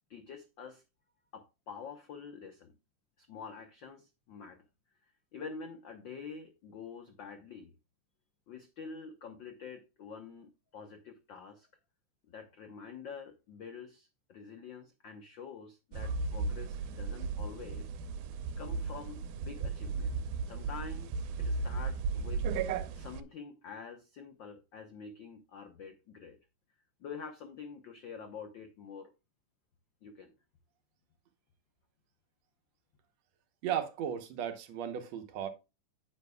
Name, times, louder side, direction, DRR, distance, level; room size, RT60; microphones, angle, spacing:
voice 1, 0.1-0.8 1.3-2.8 3.2-4.6 5.3-7.7 8.5-11.7 12.3-17.9 18.6-22.4 22.9-26.4 27.0-29.1 30.0-30.3, left 5 dB, 85° left, 1.0 m, -47 dB
sound 1, 15.9-23.2, right 4 dB, 85° right, 2.2 m, -35 dB
voice 2, 33.6-35.5, right 9 dB, 65° right, 2.0 m, -35 dB
9.7 x 8.2 x 2.3 m
omnidirectional pair, 3.5 m